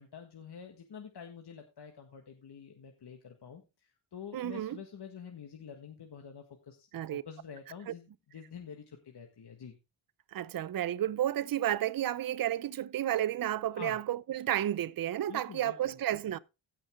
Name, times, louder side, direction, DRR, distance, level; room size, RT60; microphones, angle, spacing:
voice 1, 0.0-9.8 13.7-14.0 15.3-16.0, left 7 dB, 55° left, 1.7 m, -48 dB
voice 2, 4.3-4.8 6.9-7.2 7.9-8.0 10.3-16.4, right 12 dB, 45° right, 0.6 m, -32 dB
16.5 x 5.7 x 3.6 m
cardioid pair, 85°, 48 cm